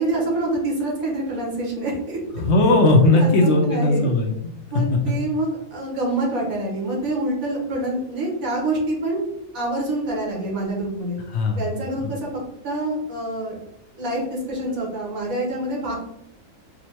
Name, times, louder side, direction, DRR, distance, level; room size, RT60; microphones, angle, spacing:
voice 1, 0.0-2.2 3.0-3.3 3.6-4.1 4.7-9.2 9.5-11.2 11.6-12.3 12.6-13.5 14.0-15.9, right 1 dB, 85° right, -2 dB, 1.6 m, -26 dB
voice 2, 2.3-4.5 11.3-11.7, left 2 dB, 65° left, 3 dB, 0.8 m, -17 dB
4.9 x 2.1 x 2.9 m, 0.78 s
omnidirectional pair, 1.4 m